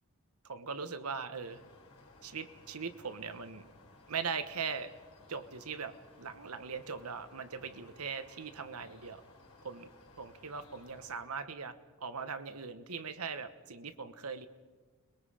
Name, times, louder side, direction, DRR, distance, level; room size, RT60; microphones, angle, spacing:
voice 1, 0.4-1.6 2.2-3.6 4.1-4.9 5.3-9.2 9.6-9.9 10.2-14.5, right 5 dB, 85° right, 10 dB, 1.2 m, -40 dB
sound 1, 1.4-11.2, left 2 dB, 85° left, 4.8 m, -59 dB
29.5 x 21.0 x 5.0 m, 1.4 s
head